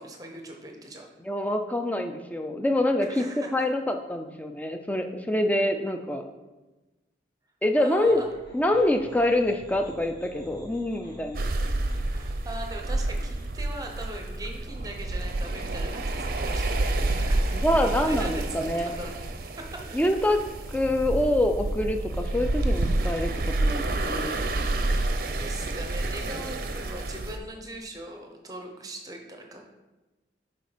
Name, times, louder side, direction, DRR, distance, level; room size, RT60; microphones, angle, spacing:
voice 1, 0.0-1.1 3.0-3.7 7.8-8.3 12.1-16.8 17.1-19.2 19.6-19.8 25.3-29.7, right 1 dB, 20° right, 2 dB, 0.8 m, -40 dB
voice 2, 1.2-3.3 3.5-6.2 7.6-8.2 8.5-11.5 17.5-18.9 19.9-20.4 20.7-23.3 23.6-24.4, left 1 dB, 10° left, 5 dB, 0.4 m, -25 dB
sound 1, 8.0-15.1, equal, 55° left, 2.3 m, -49 dB
sound 2, 11.3-27.4, right 2 dB, 55° right, 0.5 m, -29 dB
6.5 x 4.3 x 5.0 m, 1.1 s
head